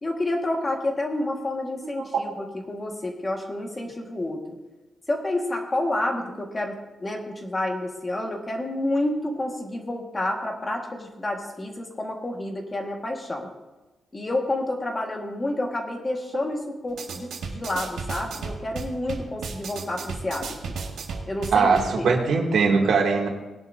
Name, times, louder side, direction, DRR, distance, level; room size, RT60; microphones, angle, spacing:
voice 1, 0.0-4.6 5.1-13.5 14.1-20.7 21.3-22.0, left 1 dB, 20° left, 2 dB, 1.6 m, -29 dB
sound 1, 16.9-21.9, right 4 dB, 85° right, 1.9 m, -35 dB
voice 2, 21.5-23.3, right 4 dB, 65° right, 1 dB, 2.4 m, -20 dB
20.0 x 11.0 x 2.7 m, 1.1 s
wide cardioid pair, 175°, 0 cm